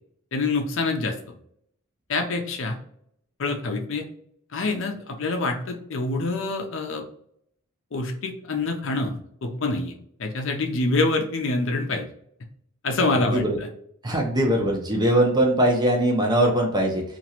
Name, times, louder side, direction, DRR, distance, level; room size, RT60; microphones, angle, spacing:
voice 1, 0.3-1.2 2.1-2.8 3.4-4.0 4.5-7.0 7.9-9.9 10.2-12.1 12.8-13.7, left 3 dB, 60° left, 3 dB, 0.6 m, -26 dB
voice 2, 14.0-17.0, right 1 dB, 20° right, 0 dB, 0.7 m, -21 dB
2.9 x 2.5 x 2.9 m, 0.69 s
head